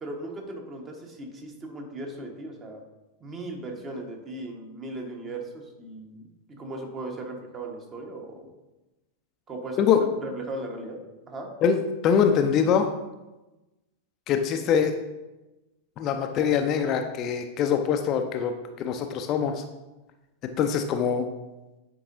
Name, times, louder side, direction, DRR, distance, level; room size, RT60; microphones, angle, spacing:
voice 1, 0.0-2.8 3.2-8.5 9.5-9.9 10.2-11.0 11.3-11.5, right 2 dB, 25° right, 3 dB, 1.2 m, -37 dB
voice 2, 11.6-12.9 14.3-15.0 16.0-19.6 20.6-21.3, left 7 dB, 35° left, 6 dB, 0.4 m, -23 dB
8.7 x 4.6 x 2.6 m, 1.0 s
figure-of-eight pair, 90°, 0 cm